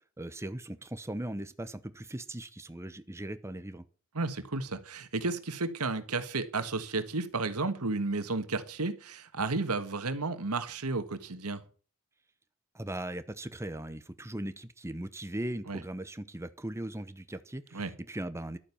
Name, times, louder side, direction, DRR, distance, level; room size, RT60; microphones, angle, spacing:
voice 1, 0.2-3.9 12.7-18.6, right 1 dB, 10° right, 0.9 m, -39 dB
voice 2, 4.1-11.6 15.7-15.8 17.7-17.9, right 3 dB, 85° right, 1.6 m, -32 dB
12.0 x 9.1 x 7.0 m
head